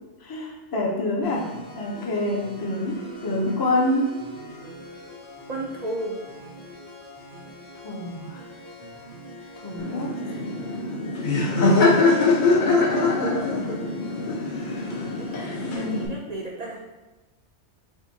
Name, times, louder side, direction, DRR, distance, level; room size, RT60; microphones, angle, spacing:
voice 1, 0.2-4.1 7.8-8.4 9.6-10.1 10.5-10.6 15.7-16.1, left 1 dB, 25° left, -1 dB, 0.5 m, -27 dB
sound 1, 1.2-16.1, right 1 dB, 80° left, 1.6 m, -43 dB
voice 2, 5.5-6.2 11.8-12.3 15.1-16.8, right 1 dB, 50° right, -1 dB, 0.5 m, -34 dB
Laughter, 9.8-16.1, left 3 dB, 50° left, 0.8 m, -23 dB
6.3 x 2.7 x 2.7 m, 1.1 s
omnidirectional pair, 1.2 m